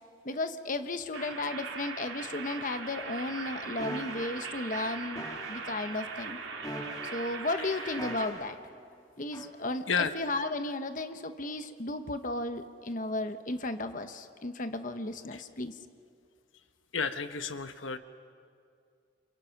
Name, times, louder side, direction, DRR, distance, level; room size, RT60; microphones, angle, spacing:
voice 1, 0.2-6.4 7.1-8.6 9.2-9.9 10.1-15.7, left 2 dB, 40° left, 8 dB, 1.1 m, -34 dB
sound 1, 1.1-8.3, right 4 dB, 80° right, 4.1 m, -40 dB
sound 2, 3.8-4.3 5.2-5.6 6.6-7.2 8.0-8.6 9.3-9.5, equal, 20° left, 3.1 m, -41 dB
voice 2, 16.9-18.0, left 6 dB, 80° left, 9 dB, 1.2 m, -32 dB
29.0 x 28.5 x 6.0 m, 2.3 s
head